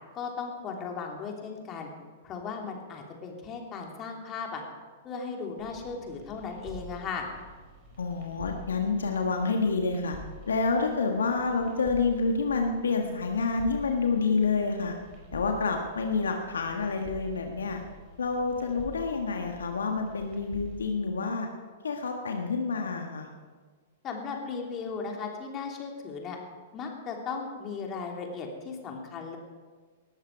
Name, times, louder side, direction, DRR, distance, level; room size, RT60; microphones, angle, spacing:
voice 1, 0.1-1.9 2.2-4.6 5.0-7.3 24.0-26.4 26.7-29.4, left 5 dB, 30° left, 1 dB, 3.1 m, -36 dB
sound 1, 5.6-20.8, equal, 40° right, 5.4 m, -48 dB
voice 2, 8.0-10.2 10.5-14.9 15.3-17.8 18.2-21.5 21.8-23.3, left 4 dB, 75° left, 3 dB, 1.5 m, -28 dB
19.0 x 14.0 x 4.8 m, 1.5 s
figure-of-eight pair, 105°, 0 cm